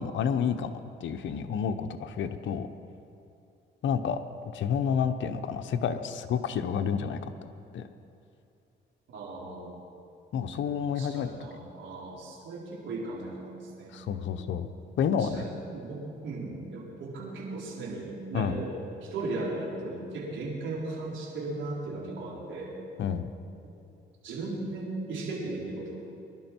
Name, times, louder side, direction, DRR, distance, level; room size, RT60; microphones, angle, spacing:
voice 1, 0.0-2.7 3.8-4.2 4.5-7.9 10.3-11.3 13.9-14.7 15.0-15.4 18.3-18.6 23.0-23.3, left 7 dB, 70° left, 8 dB, 1.0 m, -30 dB
voice 2, 9.1-9.8 11.0-14.0 15.2-18.7 19.0-22.7 24.2-26.0, right 2 dB, 75° right, -5 dB, 3.9 m, -37 dB
21.5 x 11.5 x 4.6 m, 2.6 s
cardioid pair, 90°, 20 cm